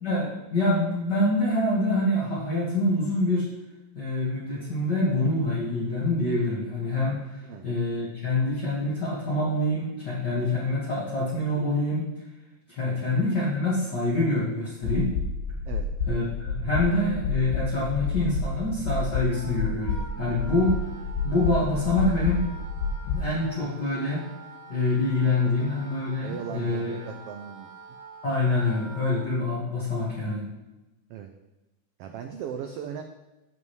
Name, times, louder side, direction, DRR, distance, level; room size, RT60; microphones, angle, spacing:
voice 1, 0.0-3.5 3.9-12.1 12.7-15.1 16.1-20.8 21.2-22.4 23.0-24.3 24.7-27.0 28.2-30.4, left 2 dB, 40° left, -7 dB, 2.1 m, -26 dB
sound 1, 14.8-23.3, left 4 dB, 85° left, 2.1 m, -30 dB
Wind instrument woodwind instrument, 19.3-29.3, right 3 dB, 70° right, 0.6 m, -46 dB
voice 2, 26.2-27.7 31.1-31.3 32.0-33.0, right 8 dB, 85° right, 5 dB, 1.3 m, -37 dB
16.0 x 5.4 x 3.2 m, 1.0 s
omnidirectional pair, 3.4 m